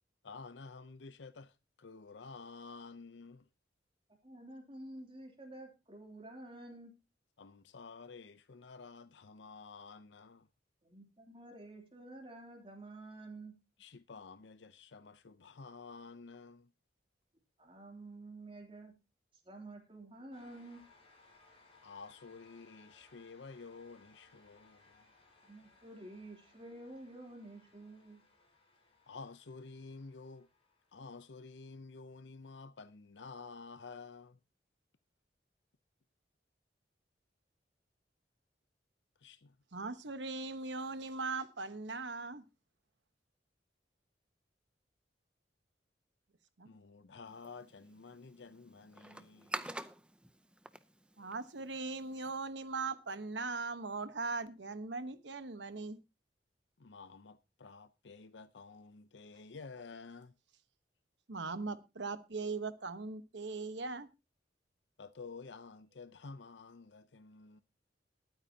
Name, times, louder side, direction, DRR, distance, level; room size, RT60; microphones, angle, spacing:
voice 1, 0.2-3.5 7.4-10.5 13.8-16.7 21.8-25.1 29.1-30.5 30.9-34.4 39.2-39.6 46.6-49.7 56.8-60.3 65.0-67.6, left 4 dB, 85° left, 0.7 m, -51 dB
voice 2, 4.2-6.9 10.8-13.5 17.6-18.9 19.4-20.8 25.4-28.2, right 2 dB, 30° right, 3.0 m, -50 dB
sound 1, 20.3-31.8, left 3 dB, 35° left, 4.6 m, -66 dB
voice 3, 39.7-42.4 46.6-46.7 51.2-56.0 61.3-64.1, right 3 dB, 85° right, 1.1 m, -39 dB
sound 2, 47.3-52.4, right 1 dB, 5° right, 0.6 m, -48 dB
21.0 x 8.9 x 2.8 m
head